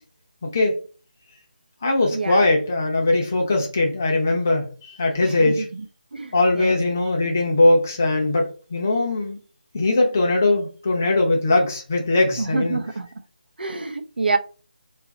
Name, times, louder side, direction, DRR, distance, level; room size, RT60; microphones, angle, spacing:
voice 1, 0.4-0.7 1.8-5.6 6.3-9.4 9.7-12.8, left 2 dB, 15° left, 0.5 m, -20 dB
voice 2, 2.1-2.5 5.2-5.9 6.1-6.8 12.4-13.1 13.6-14.4, right 3 dB, 85° right, 0.7 m, -27 dB
3.9 x 2.4 x 3.9 m
figure-of-eight pair, 180°, 5 cm